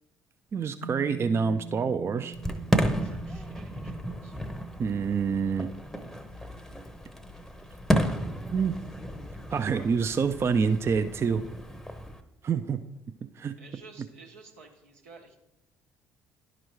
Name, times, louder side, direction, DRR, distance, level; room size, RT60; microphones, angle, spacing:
voice 1, 0.5-2.3 4.8-5.7 8.5-8.8 9.5-11.4 12.4-12.8 13.4-13.5, right 6 dB, 35° right, 9 dB, 0.4 m, -27 dB
sound 1, 0.8-9.3, right 7 dB, 75° left, 0.6 m, -46 dB
Fireworks, 2.3-12.2, equal, 5° left, 0.8 m, -32 dB
voice 2, 3.0-4.4 9.7-9.9 13.6-15.4, right 3 dB, 80° right, 1 dB, 1.1 m, -52 dB
11.0 x 4.9 x 3.1 m, 0.94 s
hypercardioid pair, 55°, 8 cm